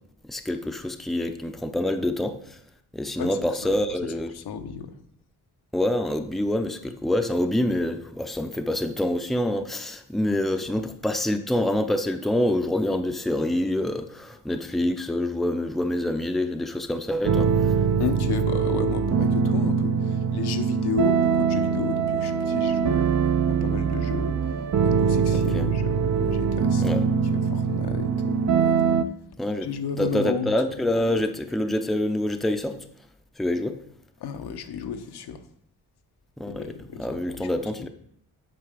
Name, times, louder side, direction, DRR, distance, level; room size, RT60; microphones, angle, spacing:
voice 1, 0.3-2.6 2.9-4.3 5.7-17.7 25.5-25.7 26.8-27.0 29.4-29.7 30.0-32.8 33.4-33.8 36.4-36.7 37.0-37.9, left 1 dB, ahead, 6 dB, 0.6 m, -26 dB
voice 2, 3.2-3.7 4.0-5.0 10.7-10.8 18.0-23.1 23.5-28.4 29.6-30.5 34.2-35.4 36.5-37.5, left 6 dB, 75° left, 7 dB, 1.0 m, -33 dB
sound 1, 17.2-29.0, right 6 dB, 45° right, 0.6 m, -23 dB
7.9 x 5.6 x 5.0 m, 0.70 s
cardioid pair, 85°, 39 cm